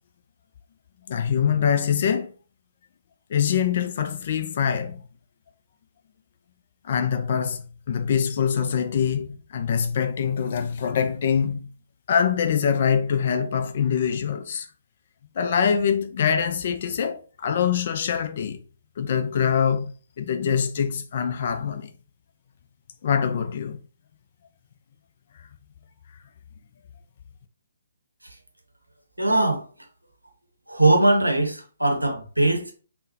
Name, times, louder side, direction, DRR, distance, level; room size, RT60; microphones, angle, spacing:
voice 1, 1.1-2.3 3.3-5.0 6.8-11.8 12.1-14.7 15.4-18.6 19.0-21.9 23.0-23.8, left 7 dB, 45° left, 0.4 m, -24 dB
voice 2, 29.2-29.6 30.7-32.7, right 2 dB, 85° right, 0.7 m, -20 dB
3.5 x 2.1 x 2.7 m
figure-of-eight pair, 135°, 0 cm